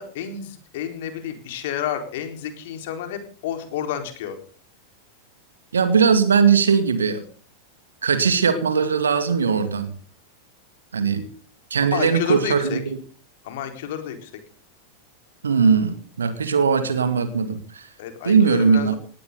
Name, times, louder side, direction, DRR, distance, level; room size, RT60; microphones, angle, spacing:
voice 1, 0.0-4.4 11.9-12.8 13.4-14.3 18.0-19.0, left 9 dB, 55° left, 7 dB, 4.2 m, -30 dB
voice 2, 5.7-7.2 8.0-9.9 10.9-11.3 11.7-12.8 15.4-17.9 18.2-18.9, right 6 dB, 70° right, 10 dB, 2.2 m, -19 dB
19.0 x 17.0 x 3.9 m, 0.41 s
figure-of-eight pair, 90°, 0 cm